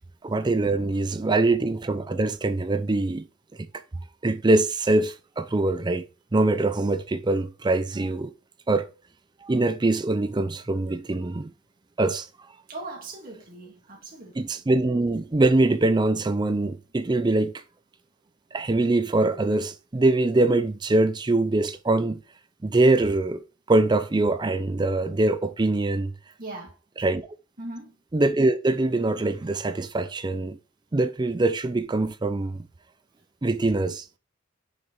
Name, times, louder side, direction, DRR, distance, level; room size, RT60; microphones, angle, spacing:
voice 1, 0.2-3.3 3.6-3.7 4.2-6.0 6.3-8.3 8.7-8.9 9.4-11.5 12.0-12.3 14.4-17.6 18.5-22.2 22.6-23.4 23.7-26.1 27.0-27.3 28.1-30.6 30.9-32.7 33.4-34.0, right 2 dB, 20° right, 0.4 m, -23 dB
voice 2, 0.7-1.3 12.7-14.6 26.4-26.8 27.6-28.0, right 2 dB, 45° right, 1.8 m, -40 dB
6.5 x 4.4 x 3.8 m
head